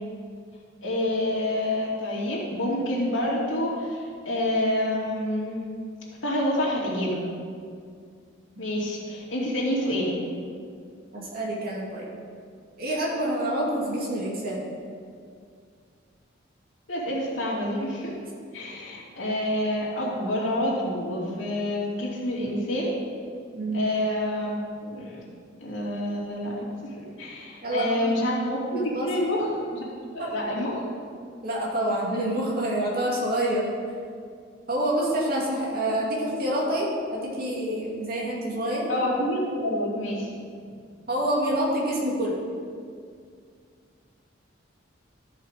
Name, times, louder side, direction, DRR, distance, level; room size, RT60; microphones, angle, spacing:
voice 1, 0.8-5.6 6.2-7.2 8.6-10.2 16.9-18.1 18.5-22.9 23.7-25.2 25.6-29.9 30.1-30.8 38.9-40.3, left 1 dB, 80° left, -5 dB, 2.6 m, -28 dB
voice 2, 11.1-12.1 12.8-14.6 23.5-23.9 27.6-28.4 28.8-29.1 30.2-30.3 31.4-33.7 34.7-38.9 41.1-42.3, right 1 dB, 50° right, -4 dB, 2.3 m, -27 dB
13.0 x 5.6 x 4.9 m, 2.2 s
head